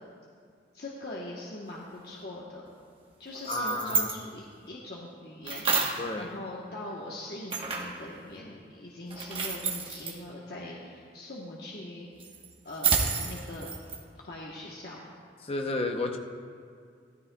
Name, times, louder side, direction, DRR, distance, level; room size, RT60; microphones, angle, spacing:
voice 1, 0.7-2.6 3.2-12.1 12.6-15.0, left 1 dB, 60° left, -5 dB, 1.1 m, -42 dB
sound 1, 3.3-4.2 5.5-6.1 7.5-8.0 9.1-10.2 12.2-14.0, right 5 dB, 30° right, 1.1 m, -30 dB
voice 2, 3.5-4.1 6.0-6.3 15.4-16.2, left 2 dB, 35° left, 4 dB, 0.6 m, -31 dB
16.0 x 13.5 x 2.3 m, 2.2 s
head